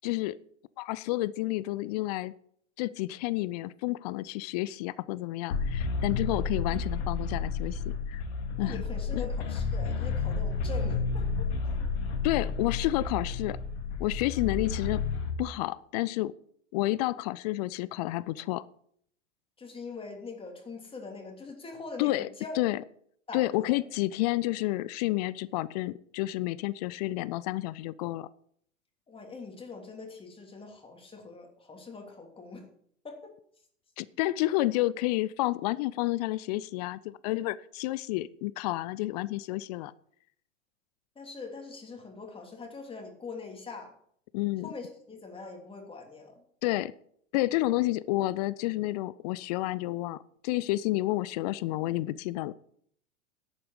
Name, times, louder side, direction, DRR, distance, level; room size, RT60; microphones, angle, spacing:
voice 1, 0.0-0.4 0.8-2.3 2.8-7.8 8.1-8.2 8.6-8.8 9.1-9.2 12.2-13.6 14.0-15.1 15.4-16.3 16.7-18.7 22.0-22.3 22.5-22.8 23.3-28.3 34.0-39.9 44.3-44.7 46.6-46.9 47.3-52.5, left 17 dB, 35° left, 19 dB, 0.4 m, -30 dB
sound 1, 5.5-15.3, left 4 dB, 60° left, 2.3 m, -31 dB
voice 2, 8.6-11.5 19.6-22.6 23.3-23.8 29.1-32.6 33.0-33.2 41.1-43.9 44.6-46.4, left 4 dB, 15° left, 2 dB, 3.0 m, -43 dB
11.0 x 8.6 x 6.6 m, 0.66 s
figure-of-eight pair, 95°, 38 cm